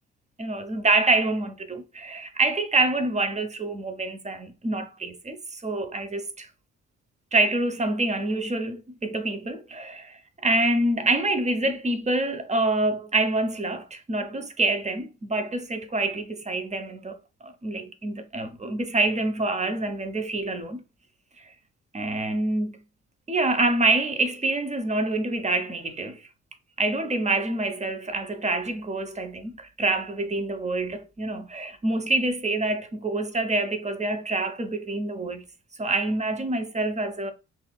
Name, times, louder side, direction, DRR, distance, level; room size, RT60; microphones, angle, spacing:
voice 1, 0.4-6.5 7.3-17.2 17.4-20.8 21.4-21.5 21.9-22.8 23.3-26.3 26.8-35.4 35.8-37.3, right 2 dB, 20° right, 0.9 m, -26 dB
5.6 x 2.5 x 2.3 m
hypercardioid pair, 40°, 35 cm